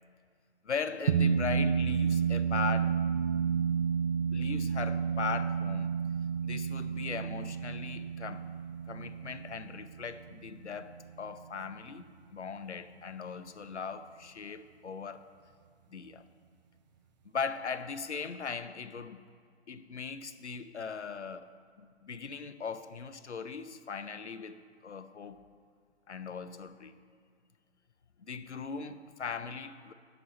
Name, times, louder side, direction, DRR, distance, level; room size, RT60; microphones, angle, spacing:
voice 1, 0.6-3.0 4.3-5.9 6.4-8.5 8.9-15.2 15.9-16.2 17.2-19.2 19.7-21.5 21.8-25.4 26.1-26.9 28.2-29.9, left 5 dB, 80° left, 11 dB, 0.8 m, -39 dB
sound 1, 1.1-11.8, right 7 dB, 40° right, 0.4 m, -31 dB
17.0 x 7.0 x 4.2 m, 2.2 s
figure-of-eight pair, 125°, 34 cm